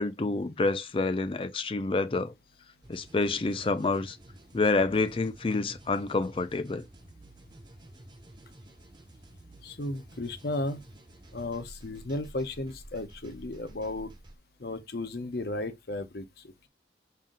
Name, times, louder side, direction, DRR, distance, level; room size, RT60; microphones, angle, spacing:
voice 1, 0.0-2.3 2.9-4.2 4.5-6.8, left 3 dB, 30° left, 0.4 m, -28 dB
sound 1, 2.8-14.4, right 1 dB, 25° right, 0.7 m, -51 dB
voice 2, 9.6-10.8 11.3-14.1 14.6-16.3, left 2 dB, 60° left, 0.7 m, -34 dB
5.6 x 2.5 x 3.7 m
head